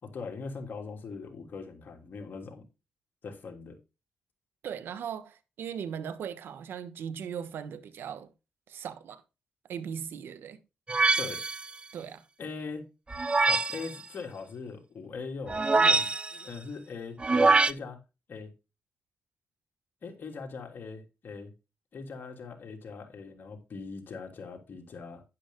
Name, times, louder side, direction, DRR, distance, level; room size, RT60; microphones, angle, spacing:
voice 1, 0.0-2.6 3.2-3.8 11.2-11.4 12.4-12.8 13.4-18.0 18.3-18.5 20.0-21.5 21.9-25.2, left 4 dB, 65° left, 3.4 m, -41 dB
voice 2, 4.6-8.3 8.7-9.2 9.7-10.6 11.9-12.2, right 8 dB, 85° right, 1.3 m, -38 dB
sound 1, 10.9-11.7 13.1-13.9 15.5-16.4 17.2-17.7, right 3 dB, 30° right, 0.6 m, -24 dB
11.5 x 11.0 x 2.2 m
cardioid pair, 65°, 4 cm